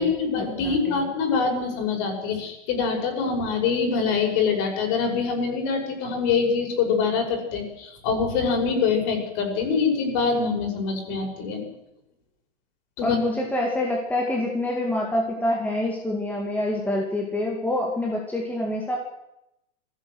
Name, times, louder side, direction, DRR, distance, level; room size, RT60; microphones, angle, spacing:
voice 1, 0.0-11.6 13.0-13.2, left 5 dB, 40° left, 3 dB, 5.8 m, -24 dB
voice 2, 0.6-1.0 13.0-19.0, left 1 dB, 5° left, -1 dB, 2.1 m, -26 dB
20.5 x 16.0 x 7.9 m, 0.86 s
supercardioid pair, 165°, 37 cm